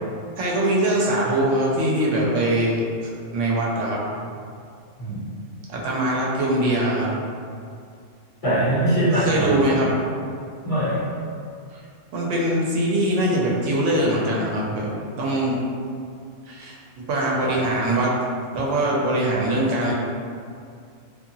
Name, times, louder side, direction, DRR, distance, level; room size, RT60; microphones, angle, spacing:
voice 1, 0.4-2.8 3.3-4.0 5.7-7.1 9.1-9.9 11.7-11.8 12.1-15.6 16.5-18.1 18.5-19.9, right 1 dB, 80° right, -4 dB, 0.9 m, -22 dB
voice 2, 8.4-9.9 10.6-11.1 17.4-17.6, right 1 dB, 35° left, -12 dB, 0.6 m, -22 dB
2.7 x 2.4 x 2.5 m, 2.3 s
omnidirectional pair, 1.3 m